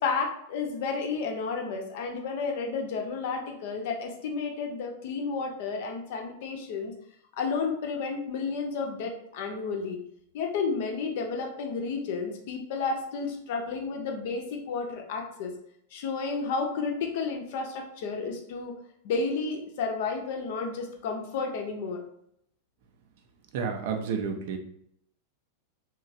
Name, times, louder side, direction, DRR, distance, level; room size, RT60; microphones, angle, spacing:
voice 1, 0.0-6.9 7.3-10.0 10.3-15.5 15.9-18.7 19.0-22.0, left 4 dB, 50° left, 3 dB, 0.5 m, -31 dB
voice 2, 23.5-24.6, right 6 dB, 50° right, 5 dB, 0.4 m, -30 dB
2.9 x 2.3 x 2.6 m, 0.71 s
figure-of-eight pair, 90°, 0 cm